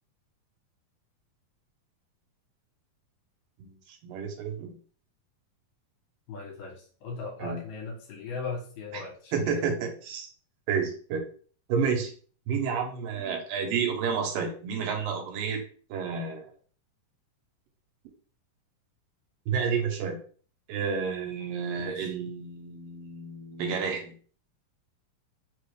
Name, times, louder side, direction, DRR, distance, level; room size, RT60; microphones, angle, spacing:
voice 1, 4.0-4.8 7.4-7.6 8.9-9.0 9.3-10.3 10.7-11.2 11.7-12.1 12.5-15.6 15.9-16.5 19.5-20.2 20.7-24.1, right 6 dB, 75° right, 3 dB, 2.5 m, -30 dB
voice 2, 6.3-9.7 21.8-22.1, left 4 dB, 75° left, -1 dB, 2.5 m, -38 dB
5.5 x 2.4 x 3.2 m, 0.42 s
omnidirectional pair, 4.1 m